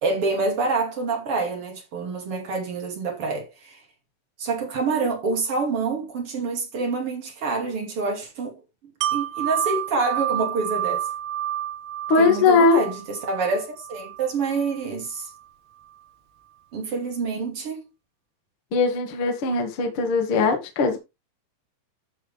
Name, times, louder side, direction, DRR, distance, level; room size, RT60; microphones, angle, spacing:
voice 1, 0.0-3.8 4.4-8.6 9.1-11.1 12.2-15.3 16.7-17.8, right 4 dB, 40° right, 2.1 m, -27 dB
Wind chime, 9.0-14.8 15.2-15.3, right 12 dB, 90° right, 3.6 m, -30 dB
voice 2, 12.1-12.8 18.7-21.0, left 4 dB, 50° left, 1.6 m, -20 dB
13.0 x 6.2 x 3.4 m
omnidirectional pair, 5.8 m